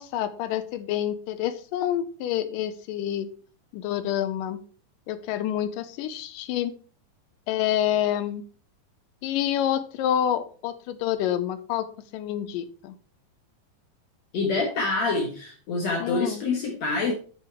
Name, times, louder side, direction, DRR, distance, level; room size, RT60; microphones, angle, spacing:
voice 1, 0.0-3.3 3.7-4.6 5.1-6.8 7.5-8.4 9.2-11.9 12.1-13.0 16.0-16.4, left 11 dB, 90° left, 12 dB, 2.3 m, -28 dB
voice 2, 14.3-17.1, left 3 dB, 60° left, 1 dB, 2.2 m, -26 dB
8.1 x 5.5 x 4.4 m, 0.41 s
omnidirectional pair, 3.8 m